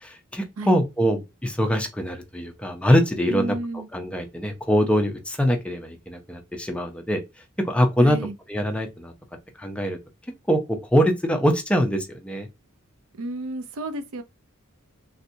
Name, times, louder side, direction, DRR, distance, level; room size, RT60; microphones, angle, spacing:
voice 1, 0.0-3.5 3.9-7.2 7.6-8.2 8.5-9.1 9.6-10.0 10.5-10.6 10.9-12.5, equal, 5° left, 0.4 m, -23 dB
voice 2, 3.3-3.9 8.0-8.3 13.2-14.2, right 2 dB, 70° right, 0.5 m, -31 dB
3.3 x 2.7 x 2.6 m
head